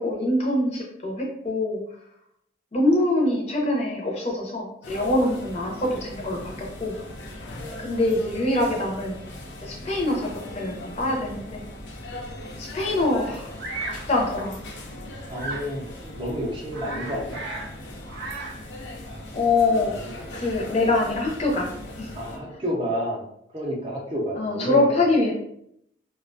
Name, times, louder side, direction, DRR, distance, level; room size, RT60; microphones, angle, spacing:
voice 1, 0.0-1.8 2.7-7.0 7.8-9.2 9.6-11.6 12.6-13.5 14.1-14.6 19.3-20.0 20.3-21.7 22.0-22.1 24.4-25.3, left 2 dB, 35° left, -2 dB, 0.5 m, -24 dB
sound 1, 4.8-22.4, left 1 dB, 85° left, 0.5 m, -39 dB
Bird vocalization bird call bird song, 13.6-14.1 15.3-15.7 16.2-16.3 16.6-17.7 18.0-18.7, right 2 dB, 85° right, 0.5 m, -34 dB
voice 2, 15.3-15.9 16.1-17.7 20.4-20.5 22.1-23.3 23.5-25.1, equal, 30° right, -3 dB, 0.5 m, -30 dB
2.3 x 2.1 x 2.5 m, 0.73 s
head